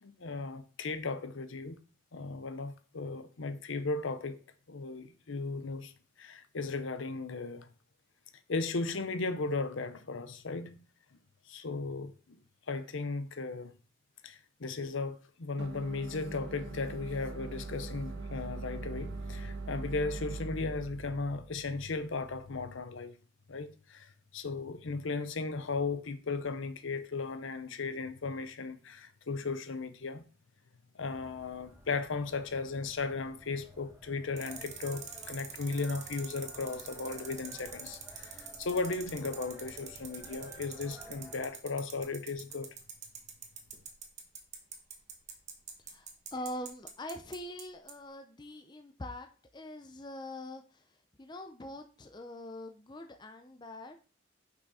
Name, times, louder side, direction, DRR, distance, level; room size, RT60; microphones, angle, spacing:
voice 1, 0.0-1.8 2.1-4.4 4.7-5.9 6.2-7.7 8.5-10.8 11.5-12.1 12.7-13.7 14.2-23.1 23.5-30.2 31.0-42.7, left 3 dB, 70° left, 0.7 m, -36 dB
sound 1, 15.6-22.7, right 3 dB, 55° right, 0.7 m, -42 dB
sound 2, 31.0-41.4, right 1 dB, 10° right, 1.1 m, -54 dB
sound 3, 34.4-47.6 47.9-48.0, right 7 dB, 35° right, 1.1 m, -44 dB
voice 2, 45.8-54.0, left 1 dB, 20° left, 0.5 m, -44 dB
5.9 x 5.8 x 4.1 m
head